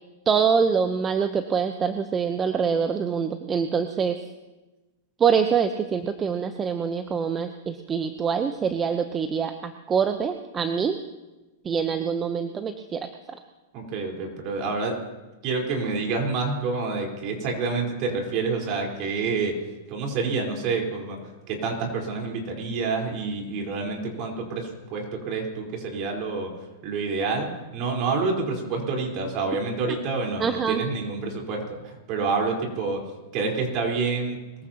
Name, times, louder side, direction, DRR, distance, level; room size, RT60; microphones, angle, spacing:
voice 1, 0.3-4.2 5.2-11.0 11.6-13.4 29.9-30.0 30.4-30.8, right 6 dB, 20° right, 8 dB, 0.9 m, -25 dB
voice 2, 13.7-15.0 15.4-19.5 19.9-21.2 21.5-26.5 26.8-33.0 33.3-34.4, right 4 dB, 45° right, 0 dB, 4.4 m, -28 dB
22.5 x 14.5 x 3.0 m, 1.1 s
hypercardioid pair, 115°, 0 cm